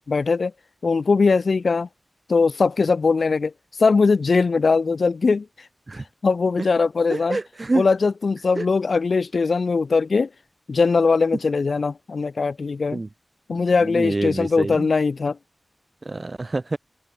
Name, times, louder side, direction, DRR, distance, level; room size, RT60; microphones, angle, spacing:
voice 1, 0.1-0.5 0.8-1.9 2.3-3.5 3.8-5.7 6.2-7.4 7.7-10.3 10.7-13.0 13.5-15.4, left 4 dB, 75° left, 2.2 m, -20 dB
voice 2, 7.1-7.8 8.6-8.7 12.9-13.1 13.8-14.9 16.1-16.8, right 2 dB, 40° right, 4.0 m, -26 dB
open air
wide cardioid pair, 70°, 0 cm